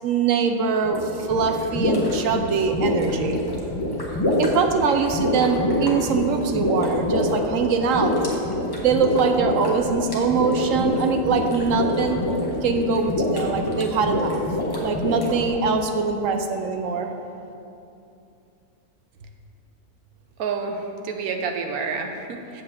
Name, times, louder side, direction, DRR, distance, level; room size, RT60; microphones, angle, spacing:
voice 1, 0.0-3.4 4.4-8.2 8.8-12.2 12.6-14.4 14.8-17.1, right 5 dB, 70° right, 6 dB, 1.0 m, -23 dB
sound 1, 0.8-15.5, left 1 dB, 15° left, 1.1 m, -25 dB
voice 2, 20.4-22.6, right 5 dB, 90° right, 4 dB, 1.3 m, -29 dB
8.1 x 5.0 x 7.3 m, 2.7 s
omnidirectional pair, 1.5 m